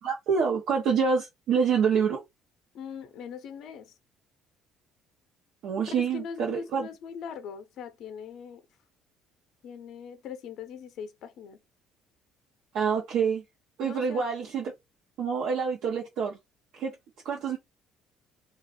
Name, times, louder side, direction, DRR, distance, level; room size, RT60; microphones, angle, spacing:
voice 1, 0.0-2.2 5.6-6.9 12.7-13.4 13.8-14.7 15.2-16.4 16.8-16.9 17.2-17.6, right 6 dB, 70° right, 0.7 m, -26 dB
voice 2, 2.7-3.9 5.9-8.6 9.6-11.6 13.8-14.2, left 7 dB, 60° left, 0.5 m, -41 dB
2.5 x 2.3 x 3.6 m
cardioid pair, 140°, 0 cm